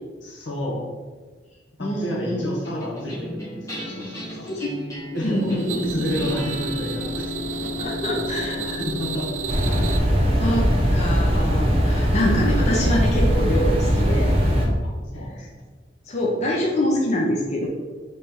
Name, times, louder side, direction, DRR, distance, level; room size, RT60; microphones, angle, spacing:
voice 1, 0.2-0.9 1.7-4.5 5.1-5.5 5.8-9.3 13.9-14.1 14.8-15.6, left 1 dB, 85° left, -2 dB, 1.1 m, -31 dB
voice 2, 1.8-2.5 4.5-4.8 5.2-6.3 7.8-8.8 10.4-14.3 16.1-17.7, left 1 dB, 40° left, -2 dB, 0.6 m, -25 dB
sound 1, 2.6-13.2, left 3 dB, 20° left, 1.4 m, -36 dB
sound 2, 5.2-10.0, right 5 dB, 80° right, 0.3 m, -32 dB
sound 3, 9.5-14.7, equal, 35° right, 0.8 m, -20 dB
3.5 x 3.2 x 4.4 m, 1.4 s
head